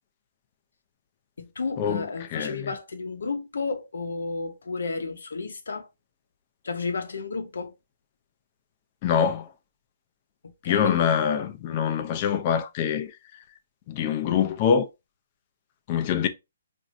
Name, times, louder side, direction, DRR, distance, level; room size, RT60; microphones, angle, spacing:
voice 1, 1.4-5.9 6.6-7.7 10.4-11.0, left 4 dB, 85° left, 0.8 m, -32 dB
voice 2, 2.3-2.7 9.0-9.5 10.6-13.1 13.9-14.9 15.9-16.3, left 7 dB, 30° left, 0.5 m, -24 dB
3.1 x 2.5 x 2.6 m
hypercardioid pair, 160°, 0 cm